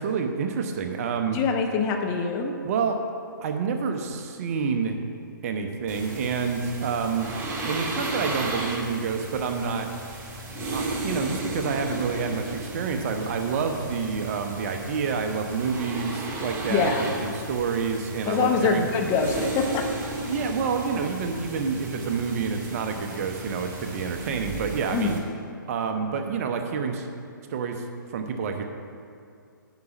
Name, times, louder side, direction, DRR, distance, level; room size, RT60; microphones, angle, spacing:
voice 1, 0.0-1.4 2.6-3.0 3.4-5.0 5.4-7.3 7.6-9.9 10.7-18.9 20.3-25.2 25.7-27.1 27.5-27.8 28.1-28.6, right 5 dB, 45° right, 5 dB, 0.8 m, -28 dB
voice 2, 1.3-2.5 16.7-17.2 18.3-19.8 24.9-25.2, left 5 dB, 25° left, 3 dB, 0.7 m, -24 dB
sound 1, 5.9-25.2, right 2 dB, 20° right, 1.2 m, -34 dB
9.4 x 5.0 x 6.0 m, 2.4 s
figure-of-eight pair, 125°, 11 cm